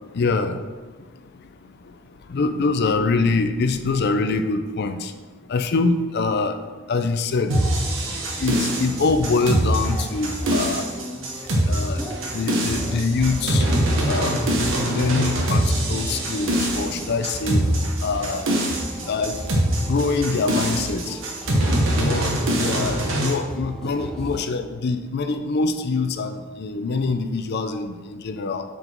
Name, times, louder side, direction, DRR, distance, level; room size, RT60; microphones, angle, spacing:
voice 1, 0.1-0.6 2.3-5.1 5.5-6.6 6.9-7.5 8.4-10.8 11.7-12.0 12.3-13.6 14.1-14.4 14.8-17.6 18.0-18.4 19.1-19.4 19.9-21.2 22.0-22.3 22.6-28.6, left 3 dB, 55° left, 8 dB, 0.5 m, -24 dB
sound 1, 7.5-24.5, equal, 5° left, 0.6 m, -35 dB
sound 2, 7.5-23.3, right 1 dB, 70° right, 1.3 m, -23 dB
5.9 x 5.3 x 4.5 m, 1.3 s
head